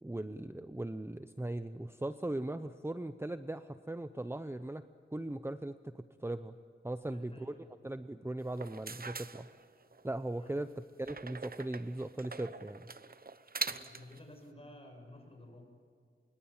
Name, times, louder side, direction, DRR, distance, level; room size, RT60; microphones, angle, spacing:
voice 1, 0.0-4.8 5.1-6.5 6.8-7.5 7.8-9.5 10.0-12.9, right 1 dB, 10° right, 10 dB, 0.7 m, -39 dB
voice 2, 7.0-7.8 10.4-10.6 13.7-15.7, left 1 dB, 30° left, 3 dB, 7.5 m, -53 dB
sound 1, 8.5-10.0 11.0-14.2, right 4 dB, 45° right, 0.9 m, -43 dB
26.0 x 23.0 x 8.9 m, 2.2 s
wide cardioid pair, 80°, 21 cm